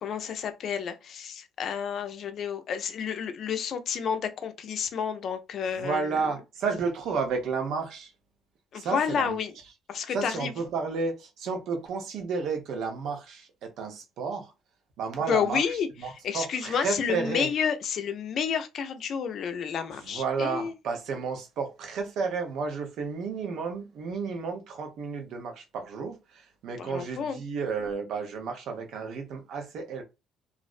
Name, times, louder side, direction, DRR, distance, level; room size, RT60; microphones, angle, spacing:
voice 1, 0.0-6.4 8.7-9.6 9.9-10.5 15.3-20.7 26.8-27.4, left 7 dB, 55° left, 0.5 m, -30 dB
voice 2, 5.8-8.1 8.7-9.4 10.1-14.5 15.0-15.6 16.0-17.5 20.1-26.2 26.6-30.0, right 5 dB, 70° right, 0.8 m, -32 dB
2.5 x 2.0 x 2.4 m
cardioid pair, 95°, 0 cm